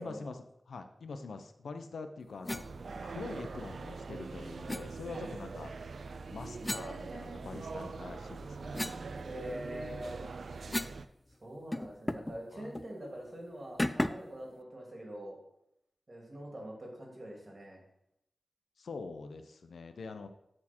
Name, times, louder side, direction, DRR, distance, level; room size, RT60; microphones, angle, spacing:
voice 1, 0.0-2.6 3.0-5.7 6.3-8.8 12.5-12.7 18.8-20.3, left 4 dB, 85° left, 8 dB, 0.6 m, -44 dB
sound 1, 2.4-2.7 4.7-4.9 6.6-7.7 8.1-11.0 11.3-11.4 11.7-12.4 12.7-12.9 13.8-14.3, left 1 dB, 20° left, 0.4 m, -37 dB
sound 2, 2.5-11.1, right 4 dB, 75° right, 0.3 m, -43 dB
voice 2, 9.2-10.3 11.4-15.4 16.1-17.8, equal, 35° right, -1 dB, 2.4 m, -44 dB
8.4 x 4.4 x 4.3 m, 0.79 s
wide cardioid pair, 70°, 0 cm